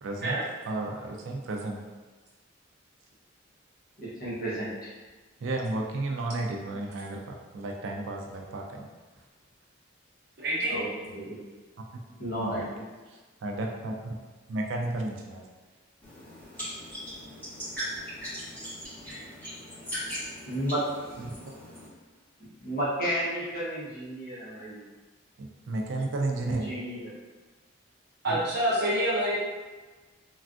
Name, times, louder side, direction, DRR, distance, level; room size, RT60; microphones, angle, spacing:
voice 1, 0.0-1.8 5.4-8.9 12.4-12.6 13.1-14.2 14.5-15.5 21.2-21.4 25.4-26.7 28.3-28.4, right 2 dB, 70° right, 1 dB, 0.4 m, -33 dB
voice 2, 4.0-4.9 10.7-11.4 12.2-12.8 19.0-19.5 20.5-20.8 22.6-24.8 26.4-27.1, right 1 dB, 45° left, -9 dB, 1.0 m, -33 dB
voice 3, 10.4-10.8 28.2-29.4, right 1 dB, 55° right, -6 dB, 0.7 m, -26 dB
sound 1, 16.0-21.9, equal, 10° left, 1.2 m, -39 dB
3.2 x 2.3 x 2.4 m, 1.3 s
head